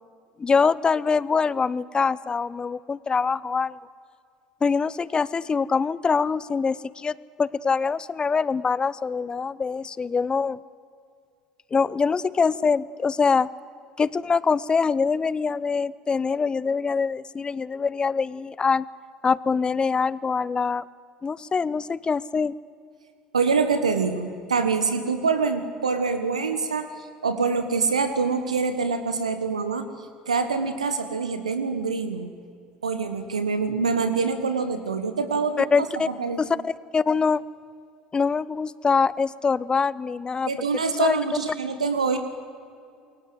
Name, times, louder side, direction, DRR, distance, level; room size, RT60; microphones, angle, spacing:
voice 1, 0.4-3.8 4.6-7.1 7.4-10.6 11.7-13.5 14.0-18.9 19.2-20.8 21.2-22.5 35.6-36.1 36.4-37.4 38.1-40.5 41.0-41.2, left 5 dB, 25° left, 21 dB, 0.8 m, -24 dB
voice 2, 23.3-29.9 30.3-32.3 32.8-35.6 36.1-36.4 40.5-42.2, right 4 dB, 90° right, 9 dB, 1.5 m, -25 dB
28.5 x 23.0 x 7.9 m, 2.4 s
hypercardioid pair, 65°, 4 cm